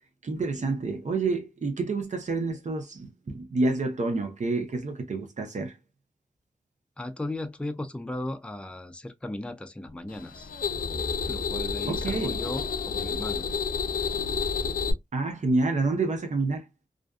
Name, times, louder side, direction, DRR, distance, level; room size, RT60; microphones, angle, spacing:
voice 1, 0.2-5.7 11.9-12.3 15.1-16.6, right 3 dB, 60° right, 0.6 m, -28 dB
voice 2, 7.0-10.5 11.3-13.5, left 1 dB, 10° left, 0.4 m, -36 dB
sound 1, 10.1-14.9, left 5 dB, 85° left, 0.4 m, -30 dB
2.4 x 2.3 x 2.2 m
cardioid pair, 60°, 14 cm